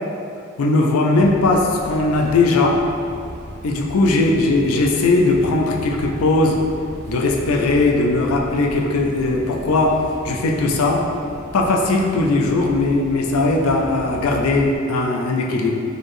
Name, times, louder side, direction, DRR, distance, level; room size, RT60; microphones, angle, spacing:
voice 1, 0.6-2.8 3.6-6.6 7.1-11.0 11.5-15.7, left 2 dB, 75° left, 0 dB, 0.5 m, -18 dB
sound 1, 1.1-14.8, equal, 50° right, 0.7 m, -37 dB
3.9 x 3.3 x 2.6 m, 2.4 s
head